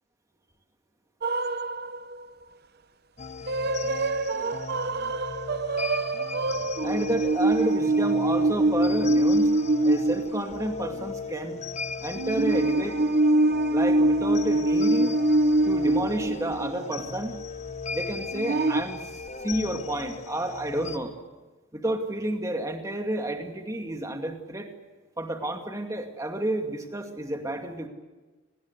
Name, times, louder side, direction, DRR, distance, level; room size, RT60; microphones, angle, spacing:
sound 1, 1.2-2.2 3.5-10.7 11.0-11.1 12.2-17.1 18.3-18.8, right 2 dB, 45° right, 0.7 m, -24 dB
sound 2, 3.2-21.0, left 5 dB, 30° left, 1.0 m, -37 dB
voice 1, 6.8-9.5 9.8-11.6 12.0-13.1 13.7-15.2 15.6-17.4 17.9-21.1 21.7-24.7 25.2-27.9, right 1 dB, 15° right, 4 dB, 2.3 m, -30 dB
29.0 x 20.0 x 8.2 m, 1.3 s
head